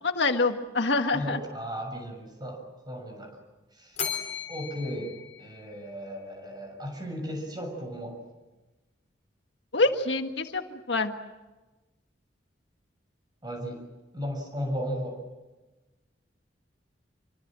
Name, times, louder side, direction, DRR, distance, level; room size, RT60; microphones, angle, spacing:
voice 1, 0.0-1.4 9.7-11.1, left 3 dB, 70° left, 6 dB, 1.7 m, -26 dB
voice 2, 1.1-3.4 3.7-4.0 4.5-8.2 13.4-13.8 14.1-15.2, equal, 25° right, 4 dB, 6.9 m, -35 dB
Bell, 4.0-6.3, left 7 dB, 40° left, 3.4 m, -37 dB
27.0 x 24.5 x 7.6 m, 1.1 s
head